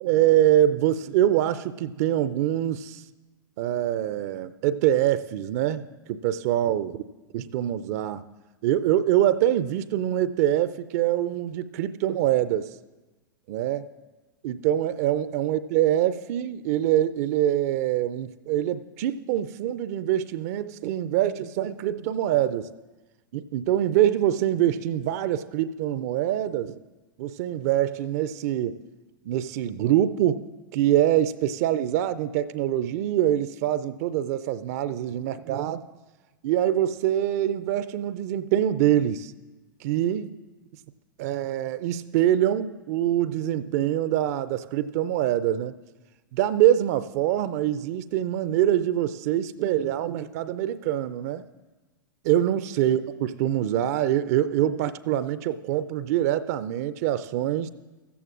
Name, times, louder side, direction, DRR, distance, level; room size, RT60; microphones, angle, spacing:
voice 1, 0.0-3.0 3.6-5.8 6.1-7.0 7.3-8.2 8.6-12.7 13.5-13.8 14.4-22.7 23.3-26.8 27.2-28.8 29.3-30.4 30.7-35.8 36.4-39.3 39.8-40.3 41.2-45.7 46.3-51.5 52.2-57.7, right 12 dB, 50° right, 15 dB, 0.4 m, -24 dB
15.5 x 14.0 x 2.5 m, 1.2 s
figure-of-eight pair, 90°, 11 cm